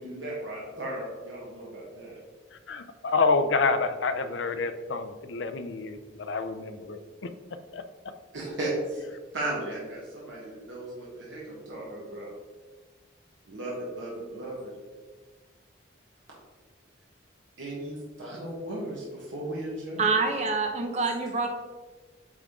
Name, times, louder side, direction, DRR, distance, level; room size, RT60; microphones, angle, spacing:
voice 1, 0.0-2.2 8.3-9.0 9.3-12.3 13.5-14.7 17.6-20.0, right 1 dB, 70° right, -5 dB, 1.4 m, -36 dB
voice 2, 2.5-7.3 7.7-7.8, left 4 dB, 65° left, 9 dB, 0.5 m, -28 dB
voice 3, 20.0-21.5, right 4 dB, 35° right, 4 dB, 0.8 m, -26 dB
8.5 x 3.6 x 3.6 m, 1.4 s
head